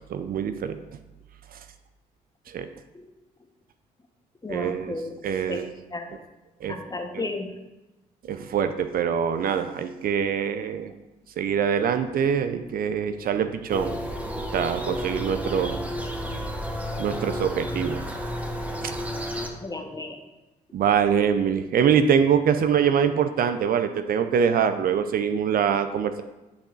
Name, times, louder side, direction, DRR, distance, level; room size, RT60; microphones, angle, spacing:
voice 1, 0.1-0.8 2.5-2.7 4.5-5.0 5.2-5.7 6.6-6.7 7.1-7.2 8.3-10.9 11.4-14.0 14.5-15.8 17.0-18.0 20.7-26.2, right 7 dB, 55° right, 9 dB, 0.5 m, -24 dB
voice 2, 4.4-5.2 5.5-5.6 5.9-6.2 6.7-7.6 19.6-20.2, left 2 dB, 20° left, 5 dB, 1.0 m, -33 dB
sound 1, 13.7-19.5, equal, 10° right, 1.1 m, -31 dB
9.6 x 6.0 x 2.5 m, 1.0 s
hypercardioid pair, 50°, 18 cm